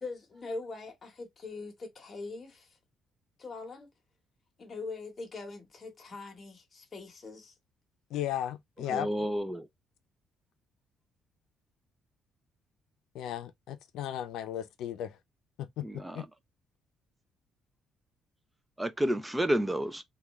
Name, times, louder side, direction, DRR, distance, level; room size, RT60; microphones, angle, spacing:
voice 1, 0.0-2.8 3.4-3.9 4.6-7.5, left 3 dB, 25° left, 1.0 m, -42 dB
voice 2, 8.1-9.1 13.1-15.2 15.6-16.2, left 11 dB, 80° left, 0.5 m, -35 dB
voice 3, 8.9-9.7 15.8-16.2 18.8-20.0, equal, 5° right, 0.4 m, -30 dB
3.5 x 2.3 x 3.0 m
cardioid pair, 160°, 0 cm